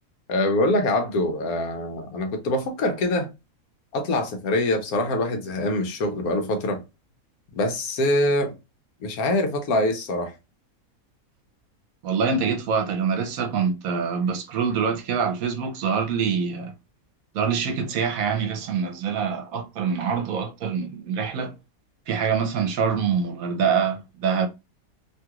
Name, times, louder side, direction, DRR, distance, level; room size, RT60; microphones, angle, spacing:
voice 1, 0.3-3.3 3.9-6.8 7.5-8.5 9.0-10.3, left 1 dB, 85° left, 1.2 m, -24 dB
voice 2, 12.0-16.7 17.3-21.5 22.1-24.5, right 6 dB, 75° right, 1.1 m, -25 dB
3.0 x 2.4 x 2.8 m
omnidirectional pair, 1.5 m